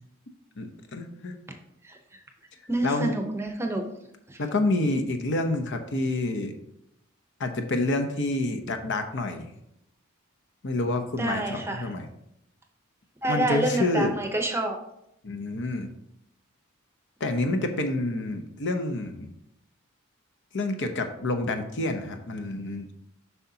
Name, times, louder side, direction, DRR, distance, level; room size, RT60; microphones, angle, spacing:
voice 1, 0.6-1.4 2.8-3.1 4.4-6.5 7.4-9.5 10.6-12.1 13.3-14.1 15.2-15.9 17.2-19.3 20.5-22.9, left 2 dB, 55° left, 6 dB, 0.8 m, -28 dB
voice 2, 2.7-3.8 4.3-4.4 11.2-11.9 13.2-14.8, right 1 dB, 10° right, 4 dB, 0.7 m, -28 dB
7.9 x 5.7 x 2.8 m, 0.79 s
head